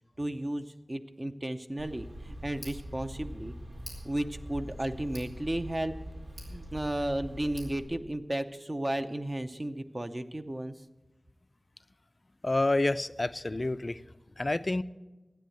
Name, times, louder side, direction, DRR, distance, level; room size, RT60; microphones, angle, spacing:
voice 1, 0.2-3.6 4.0-5.9 6.5-10.7, right 1 dB, 30° right, 8 dB, 0.7 m, -34 dB
Tick, 1.8-7.8, equal, 85° right, 4.3 m, -43 dB
voice 2, 12.4-14.0 14.4-14.8, left 2 dB, 40° left, 14 dB, 0.4 m, -28 dB
13.0 x 9.2 x 7.9 m, 1.1 s
wide cardioid pair, 70°, 0 cm